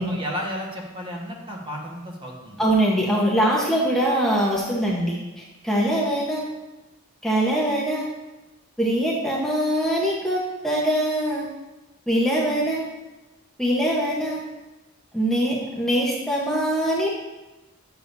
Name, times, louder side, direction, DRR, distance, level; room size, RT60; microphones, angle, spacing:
voice 1, 0.0-2.6, equal, 25° right, -2 dB, 1.3 m, -33 dB
voice 2, 2.6-6.5 7.2-8.1 8.8-11.4 12.1-12.8 13.6-14.4 15.1-17.1, right 1 dB, ahead, -5 dB, 0.9 m, -23 dB
9.8 x 7.1 x 2.6 m, 1.1 s
head